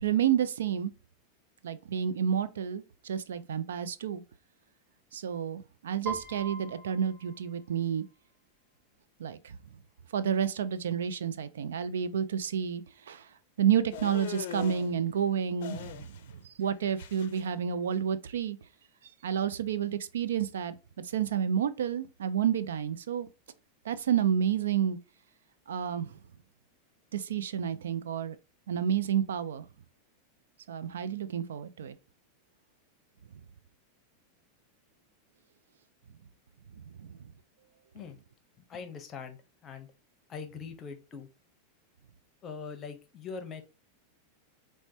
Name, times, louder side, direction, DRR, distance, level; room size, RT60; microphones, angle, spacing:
voice 1, 0.0-0.9 1.6-4.2 5.1-8.0 9.2-9.5 10.1-13.2 13.6-16.2 16.4-18.6 19.2-20.8 21.0-23.3 23.9-25.0 25.7-26.1 27.1-28.4 28.7-29.6 30.7-32.0 37.0-37.1, right 8 dB, 90° right, 0.3 m, -30 dB
Piano, 6.1-8.1, right 4 dB, 5° right, 1.7 m, -41 dB
sound 1, 13.9-14.9 15.6-16.4 16.6-17.4, left 10 dB, 70° left, 0.4 m, -41 dB
voice 2, 38.7-39.4 39.6-39.9 40.3-41.3 42.4-43.6, left 5 dB, 30° left, 0.7 m, -42 dB
4.3 x 2.1 x 2.6 m
hypercardioid pair, 120°, 0 cm